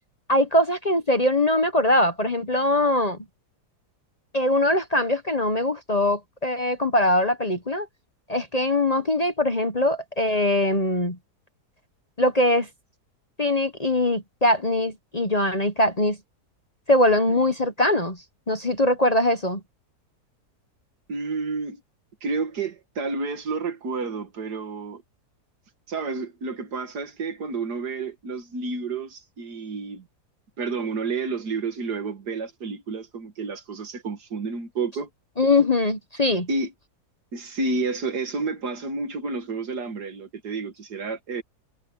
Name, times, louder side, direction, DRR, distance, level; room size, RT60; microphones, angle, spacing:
voice 1, 0.3-3.2 4.3-7.9 8.3-11.2 12.2-12.7 13.4-16.2 16.9-18.2 18.5-19.6 35.4-36.5, left 1 dB, 25° left, 1.1 m, -22 dB
voice 2, 21.1-21.8 22.2-25.0 25.9-30.0 30.6-35.1 36.5-36.7 37.3-41.4, right 4 dB, 75° right, 2.4 m, -30 dB
omnidirectional pair, 1.7 m